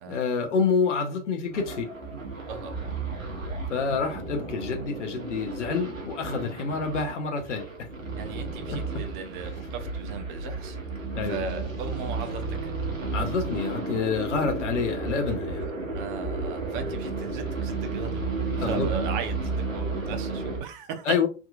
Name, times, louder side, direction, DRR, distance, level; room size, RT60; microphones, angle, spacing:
voice 1, 0.1-1.9 3.7-7.9 8.7-8.8 11.1-11.4 13.1-15.7 18.6-18.9 21.1-21.3, left 5 dB, 65° left, 0.9 m, -28 dB
sound 1, 1.5-20.6, right 3 dB, 85° right, 1.1 m, -33 dB
voice 2, 2.5-3.0 8.1-10.8 11.2-12.7 15.9-18.2 18.6-21.2, right 5 dB, 40° right, 0.7 m, -37 dB
3.5 x 2.8 x 2.3 m
figure-of-eight pair, 100°, 39 cm